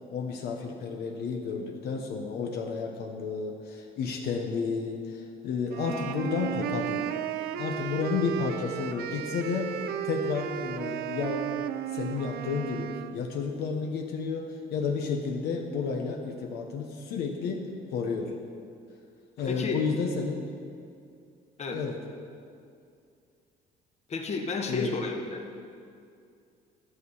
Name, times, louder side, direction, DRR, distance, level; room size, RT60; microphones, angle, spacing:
voice 1, 0.1-7.1 7.6-17.6 17.9-18.3 19.4-20.5 21.7-22.0 24.7-24.9, left 5 dB, 75° left, 2 dB, 1.0 m, -31 dB
sound 1, 5.7-13.2, right 11 dB, 65° right, 0.5 m, -34 dB
voice 2, 19.5-19.8 21.6-21.8 24.1-25.4, left 4 dB, 40° left, 3 dB, 1.2 m, -31 dB
11.0 x 6.6 x 5.4 m, 2.4 s
cardioid pair, 110°, 17 cm